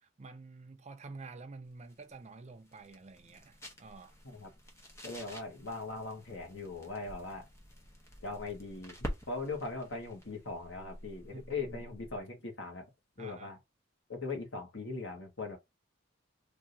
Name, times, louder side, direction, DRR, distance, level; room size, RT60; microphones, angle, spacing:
voice 1, 0.0-4.1 11.3-11.8 13.2-13.6, right 3 dB, 35° right, 0.4 m, -49 dB
sound 1, 1.7-12.3, equal, 15° left, 0.8 m, -48 dB
voice 2, 5.0-7.4 8.2-12.9 13.2-13.6 14.1-15.6, left 3 dB, 65° left, 1.3 m, -40 dB
3.4 x 2.7 x 2.6 m
head